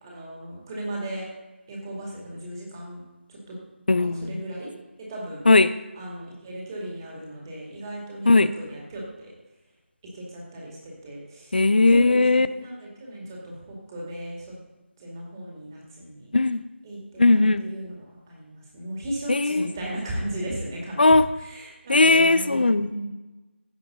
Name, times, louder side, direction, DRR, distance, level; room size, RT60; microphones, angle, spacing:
voice 1, 0.0-1.3 1.7-3.0 3.3-3.6 4.2-4.7 5.1-5.4 6.0-9.3 10.1-11.6 11.9-14.5 15.0-16.3 16.8-23.1, right 1 dB, 15° right, -3 dB, 2.3 m, -36 dB
voice 2, 3.9-4.4 5.5-5.7 8.2-8.5 11.5-12.5 16.3-16.6 17.2-17.6 19.3-19.7 21.0-21.3 21.9-23.1, left 3 dB, 50° left, 15 dB, 0.5 m, -18 dB
16.0 x 5.7 x 3.9 m, 1.1 s
figure-of-eight pair, 165°, 7 cm